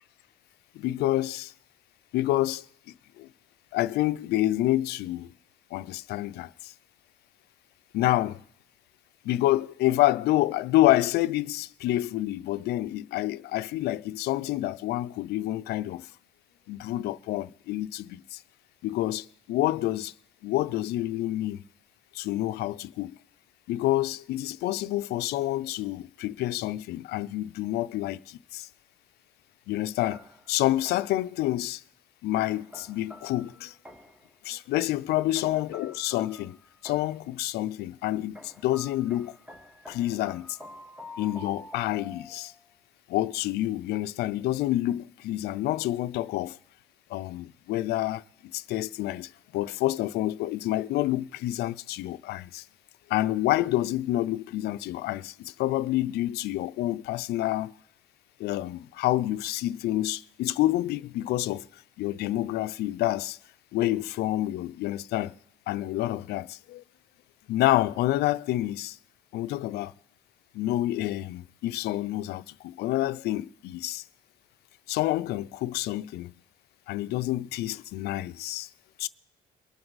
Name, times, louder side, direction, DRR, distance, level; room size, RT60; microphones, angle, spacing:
voice 1, 0.8-1.5 2.1-2.7 3.2-3.3 3.7-5.3 5.7-6.7 7.9-8.4 9.2-16.1 16.7-18.4 18.8-20.1 20.4-21.6 22.1-23.1 23.7-28.7 29.7-31.8 32.2-33.7 34.4-36.6 36.8-39.4 39.9-40.6 41.2-42.5 43.1-46.6 47.1-48.2 48.5-52.6 53.1-57.7 58.4-61.7 62.0-63.4 63.7-65.3 65.7-66.8 67.5-69.0 69.3-69.9 70.5-74.0 74.9-76.3 76.9-78.7 79.0-79.1, left 15 dB, 75° left, 0.5 m, -28 dB
sound 1, 30.1-31.3 32.3-34.3 35.3-37.3 38.3-42.6, left 2 dB, 5° right, 1.0 m, -47 dB
23.5 x 7.8 x 4.0 m
cardioid pair, 110°, 17 cm